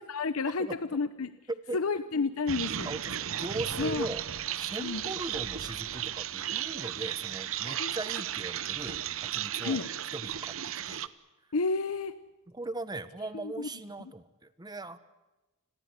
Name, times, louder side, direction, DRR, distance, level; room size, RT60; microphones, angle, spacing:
voice 1, 0.1-1.3 1.7-2.9 3.8-4.1 4.8-5.0 7.8-7.9 9.6-9.9 11.5-12.2 13.4-13.7, left 4 dB, 85° left, 13 dB, 0.8 m, -30 dB
voice 2, 1.5-1.8 2.8-4.2 4.5-9.0 9.3-10.5 10.9-11.1 12.5-15.0, right 2 dB, 20° right, 13 dB, 1.2 m, -39 dB
sound 1, 2.5-11.1, right 10 dB, 70° right, 0.9 m, -35 dB
30.0 x 21.0 x 8.2 m, 1.1 s
head